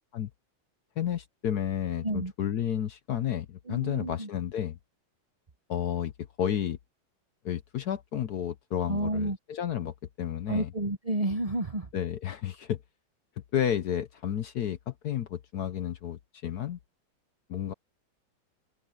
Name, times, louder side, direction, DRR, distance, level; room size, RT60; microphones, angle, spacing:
voice 1, 1.0-4.8 5.7-6.1 6.4-6.8 7.4-10.7 11.9-12.8 13.5-16.8 17.5-17.7, left 10 dB, 60° left, 1.1 m, -31 dB
voice 2, 3.7-4.3 8.9-9.4 10.5-11.9, right 1 dB, 50° right, 0.4 m, -30 dB
omnidirectional pair, 2.2 m